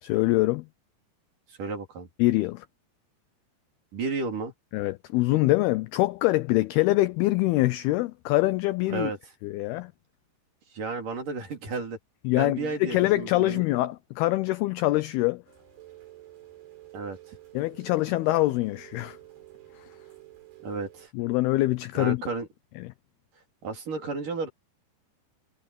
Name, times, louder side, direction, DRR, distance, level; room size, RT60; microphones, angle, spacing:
voice 1, 0.0-0.7 2.2-2.7 4.7-9.1 9.4-9.9 12.3-15.4 17.5-19.2 21.1-22.2 22.8-22.9, left 18 dB, 85° left, 2.2 m, -24 dB
voice 2, 1.5-2.1 3.9-4.5 8.9-9.2 10.7-12.0 12.4-13.6 16.9-17.4 20.6-21.1 21.9-22.5 23.6-24.5, right 4 dB, 50° right, 5.2 m, -32 dB
Rain, 15.5-21.1, right 15 dB, 65° right, 6.9 m, -50 dB
omnidirectional pair, 5.2 m